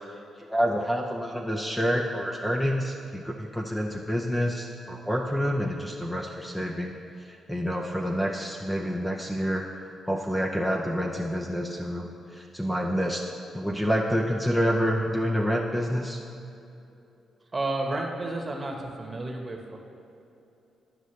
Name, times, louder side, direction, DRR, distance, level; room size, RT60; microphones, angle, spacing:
voice 1, 0.4-9.6 10.1-13.2 13.5-16.2, equal, 5° left, 0 dB, 0.6 m, -28 dB
voice 2, 17.5-19.8, right 2 dB, 30° right, 1 dB, 1.1 m, -31 dB
11.5 x 5.3 x 3.2 m, 2.8 s
cardioid pair, 80°, 0 cm